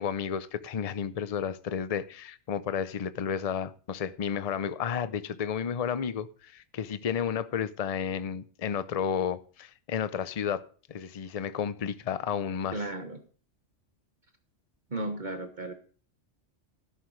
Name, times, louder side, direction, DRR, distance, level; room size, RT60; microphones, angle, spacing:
voice 1, 0.0-12.8, left 7 dB, 40° left, 0.6 m, -32 dB
voice 2, 12.7-13.2 14.9-15.7, right 2 dB, 40° right, 1.3 m, -34 dB
13.0 x 11.0 x 3.2 m
omnidirectional pair, 1.2 m